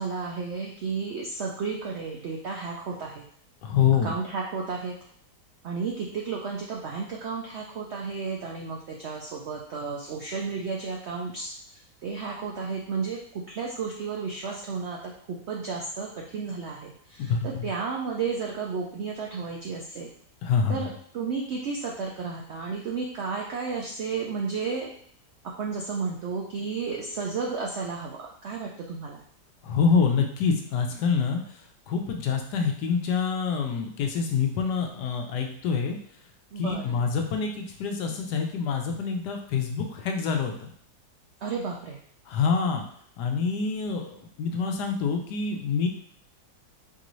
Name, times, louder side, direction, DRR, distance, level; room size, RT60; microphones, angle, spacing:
voice 1, 0.0-3.2 4.0-4.9 5.6-11.5 12.0-20.1 20.7-20.9 21.1-24.9 25.4-29.2 36.5-36.9 41.4-42.0, right 5 dB, 75° right, -1 dB, 0.6 m, -32 dB
voice 2, 3.6-4.1 17.2-17.7 20.4-20.8 29.6-31.4 31.9-36.0 36.6-40.7 42.3-42.8 43.2-45.9, left 6 dB, 80° left, 4 dB, 1.2 m, -26 dB
4.5 x 2.5 x 3.0 m, 0.63 s
omnidirectional pair, 1.8 m